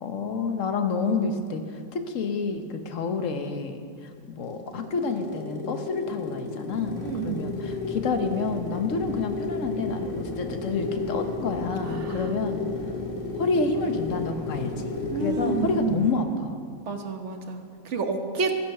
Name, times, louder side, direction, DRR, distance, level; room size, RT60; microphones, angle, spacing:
voice 1, 0.0-3.9 4.3-12.6 13.4-16.6, left 4 dB, 50° left, 6 dB, 1.3 m, -29 dB
sound 1, 4.2-15.9, left 3 dB, 85° left, 2.2 m, -33 dB
sound 2, 6.7-16.1, left 3 dB, 25° left, 4.8 m, -41 dB
voice 2, 7.0-7.5 11.9-12.3 15.1-16.1 16.8-18.5, right 4 dB, 45° right, 5 dB, 1.3 m, -30 dB
13.0 x 10.5 x 6.6 m, 2.1 s
omnidirectional pair, 1.9 m